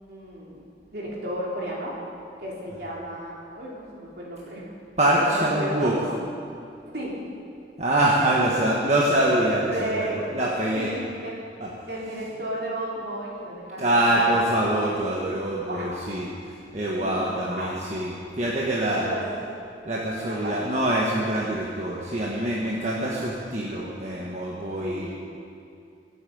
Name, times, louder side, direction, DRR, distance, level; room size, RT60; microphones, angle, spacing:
voice 1, 0.1-0.6 0.9-1.9 2.4-4.7 5.1-6.0 6.9-7.2 8.2-8.7 9.7-10.2 10.7-11.4 11.9-14.3 15.6-16.0 17.0-17.7 19.0-19.3 20.3-20.6 24.8-25.2, right 1 dB, 60° right, -4 dB, 3.6 m, -33 dB
voice 2, 5.0-5.9 7.8-10.9 11.6-11.7 13.8-19.1 19.8-25.2, right 1 dB, 40° right, -5 dB, 1.5 m, -24 dB
23.5 x 8.4 x 5.5 m, 2.5 s
head